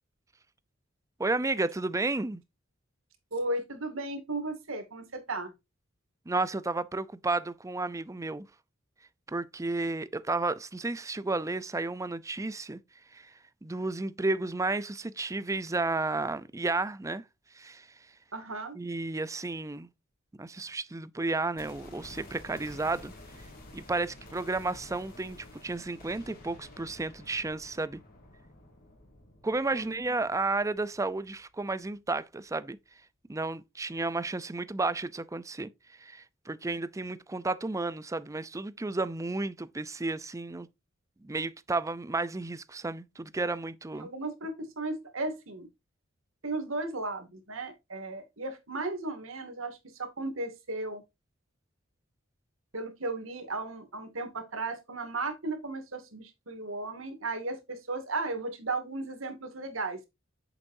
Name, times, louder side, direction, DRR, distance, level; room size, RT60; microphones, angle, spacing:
voice 1, 1.2-2.4 6.3-8.5 9.3-12.8 13.1-13.3 13.6-17.2 17.6-17.9 18.7-19.9 20.4-23.1 23.7-28.0 29.4-32.8 33.3-35.7 36.0-40.7 41.2-44.1, right 3 dB, 15° right, 0.5 m, -32 dB
voice 2, 3.3-5.5 18.3-18.8 29.7-29.9 43.9-45.7 46.4-51.0 52.7-60.0, right 2 dB, 90° right, 2.2 m, -35 dB
sound 1, 21.6-31.6 31.9-32.0, left 1 dB, 45° left, 3.0 m, -51 dB
8.2 x 7.1 x 2.6 m
head